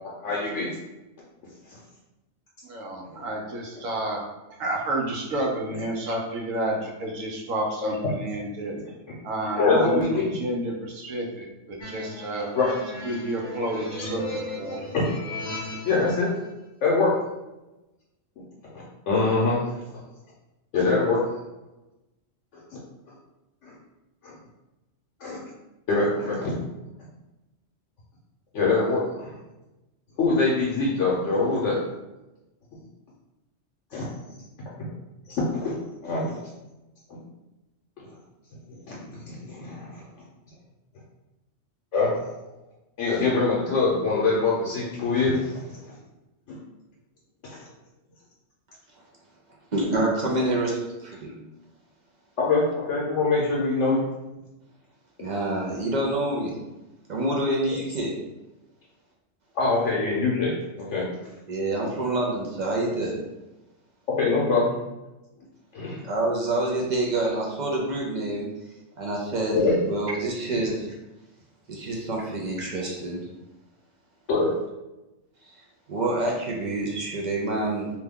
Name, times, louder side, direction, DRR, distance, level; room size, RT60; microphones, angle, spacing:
voice 1, 0.2-0.8 1.7-1.8 9.5-10.4 12.5-12.7 14.0-14.1 14.8-15.0 15.8-16.3 16.8-17.1 18.7-19.6 20.7-21.2 22.5-22.8 23.6-23.7 24.2-24.3 25.2-25.4 25.9-26.5 28.5-29.3 30.2-31.8 33.9-34.1 35.3-35.7 36.0-36.4 37.1-37.2 38.7-40.0 41.9-42.3 43.0-45.8 46.5-46.6 47.4-47.6 52.4-54.0 59.5-61.1 64.1-64.8 65.7-66.0 69.5-69.8 74.3-74.5, left 3 dB, 70° left, -5 dB, 0.9 m, -24 dB
voice 2, 2.6-4.2 4.6-8.8 9.2-12.5 13.0-14.8, right 1 dB, 90° right, -1 dB, 1.1 m, -30 dB
sound 1, 11.8-16.3, left 1 dB, 50° left, 0.6 m, -37 dB
voice 3, 49.7-51.3 55.2-56.6 57.1-58.1 61.5-63.2 66.0-68.5 69.0-69.6 69.9-71.0 71.7-73.3 75.5-75.6 75.9-77.9, right 2 dB, 60° right, -3 dB, 0.4 m, -27 dB
2.8 x 2.2 x 3.5 m, 1.0 s
omnidirectional pair, 1.3 m